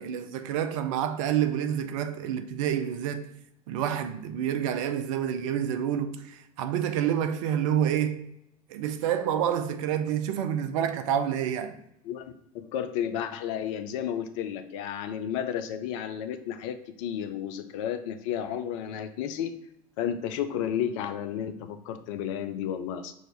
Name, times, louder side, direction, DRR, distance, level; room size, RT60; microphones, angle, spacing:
voice 1, 0.0-3.3 3.7-8.3 8.7-11.8, right 9 dB, 60° right, 0.5 m, -28 dB
voice 2, 12.1-19.5 20.0-23.1, left 9 dB, 55° left, 0.5 m, -32 dB
6.2 x 2.6 x 3.1 m
figure-of-eight pair, 70°, 19 cm